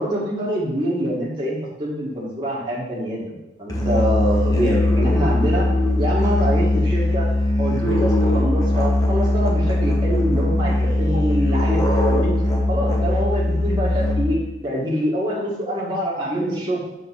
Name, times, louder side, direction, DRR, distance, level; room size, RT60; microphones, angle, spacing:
voice 1, 0.0-5.7 6.0-7.3 7.6-12.3 12.7-14.4 14.6-16.8, equal, 25° right, -6 dB, 1.5 m, -25 dB
Musical instrument, 3.7-14.5, left 2 dB, 20° left, 0.9 m, -20 dB
6.3 x 3.8 x 5.5 m, 0.94 s
head